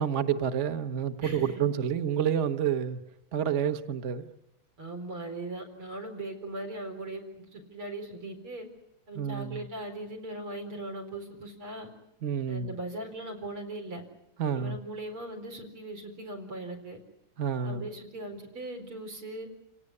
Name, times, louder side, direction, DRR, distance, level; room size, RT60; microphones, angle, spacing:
voice 1, 0.0-3.0 3.3-4.3 9.1-9.6 12.2-12.8 14.4-14.8 17.4-17.9, right 8 dB, 45° right, 10 dB, 1.1 m, -29 dB
voice 2, 1.2-1.6 4.8-8.7 9.1-11.9 12.5-14.0 14.5-17.0 17.6-19.5, right 2 dB, 80° right, 3 dB, 5.2 m, -39 dB
28.5 x 17.5 x 9.6 m, 0.83 s
omnidirectional pair, 2.4 m